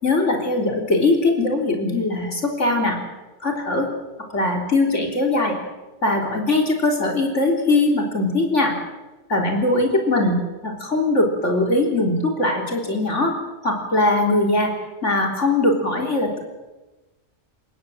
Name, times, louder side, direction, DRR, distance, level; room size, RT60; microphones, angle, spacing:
voice 1, 0.0-3.0 3.4-3.9 4.3-5.6 6.0-8.8 9.3-10.4 10.6-13.3 13.6-14.7 15.0-16.4, left 2 dB, 75° left, 2 dB, 3.9 m, -20 dB
28.5 x 16.0 x 7.7 m, 1.1 s
omnidirectional pair, 1.3 m